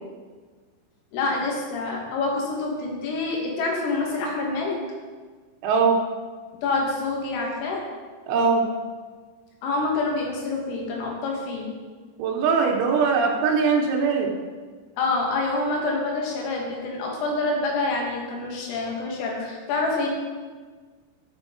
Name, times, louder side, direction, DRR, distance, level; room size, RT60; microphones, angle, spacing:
voice 1, 1.1-4.8 6.6-7.8 9.6-11.7 15.0-20.1, left 3 dB, 85° left, -1 dB, 4.3 m, -27 dB
voice 2, 5.6-6.0 8.3-8.7 12.2-14.3, right 5 dB, 85° right, 0 dB, 3.7 m, -21 dB
14.0 x 6.1 x 3.8 m, 1.5 s
omnidirectional pair, 5.8 m